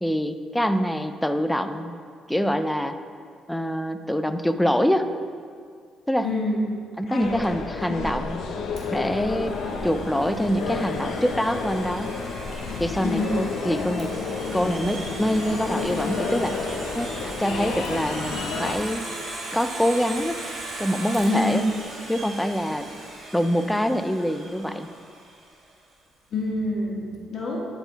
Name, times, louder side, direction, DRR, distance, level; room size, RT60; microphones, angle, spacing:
voice 1, 0.0-2.0 2.3-3.0 3.5-5.1 6.1-6.3 7.0-8.4 8.9-9.6 9.8-12.1 12.8-16.6 16.9-17.1 17.4-19.0 19.5-20.4 20.8-21.7 22.1-22.9 23.3-24.9, equal, 5° left, 9 dB, 0.4 m, -25 dB
voice 2, 6.2-6.7 7.1-7.4 7.9-8.0 13.0-13.3 21.3-21.6 26.3-27.7, left 2 dB, 60° left, -3 dB, 1.6 m, -27 dB
sound 1, 7.2-18.7, left 4 dB, 80° left, 0.6 m, -31 dB
Domestic sounds home sounds, 8.8-25.5, right 2 dB, 70° right, 1.8 m, -38 dB
10.5 x 4.1 x 4.0 m, 2.1 s
cardioid pair, 90°, 0 cm